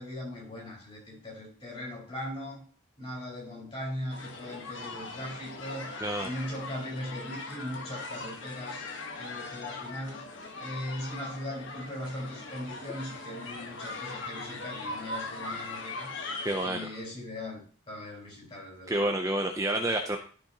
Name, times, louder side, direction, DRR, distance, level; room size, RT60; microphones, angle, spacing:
voice 1, 0.0-2.6 3.0-5.9 6.2-8.8 9.1-10.2 10.6-16.1 16.6-19.2, left 1 dB, 30° left, -4 dB, 4.5 m, -39 dB
sound 1, 4.1-16.7, left 3 dB, 65° left, 1.3 m, -40 dB
voice 2, 16.4-16.9 18.9-20.2, right 1 dB, 15° right, 3 dB, 0.6 m, -29 dB
13.0 x 5.1 x 2.9 m, 0.41 s
head